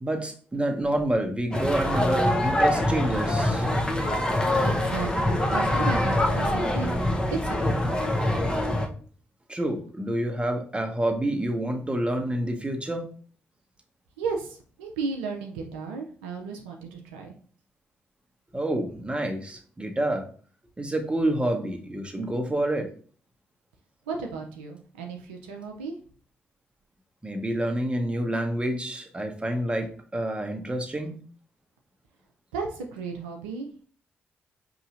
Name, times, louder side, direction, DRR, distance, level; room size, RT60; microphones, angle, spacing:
voice 1, 0.0-3.7 9.5-13.1 18.5-20.2 20.8-22.9 27.2-31.2, right 1 dB, 20° right, 5 dB, 0.9 m, -28 dB
sound 1, 1.5-8.9, left 1 dB, 15° left, 0.8 m, -24 dB
voice 2, 4.6-7.0 7.4-8.1 14.2-17.3 24.1-26.0 32.5-33.8, right 4 dB, 85° right, 2 dB, 0.4 m, -35 dB
4.8 x 2.8 x 2.5 m, 0.44 s
hypercardioid pair, 40°, 5 cm